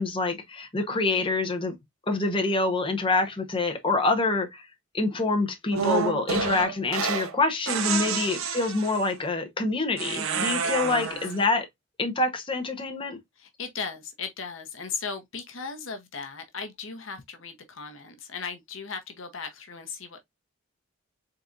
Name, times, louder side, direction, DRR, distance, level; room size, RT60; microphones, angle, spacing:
voice 1, 0.0-1.7 2.1-4.7 4.9-11.7 12.0-13.2, left 3 dB, 25° left, 1.0 m, -26 dB
voice 2, 0.9-1.2 8.0-8.4 10.6-11.2 13.4-20.2, left 5 dB, 65° left, 0.9 m, -37 dB
sound 1, 5.7-7.3 7.7-9.1 10.0-11.4, right 5 dB, 85° right, 1.0 m, -29 dB
4.3 x 3.8 x 2.5 m
head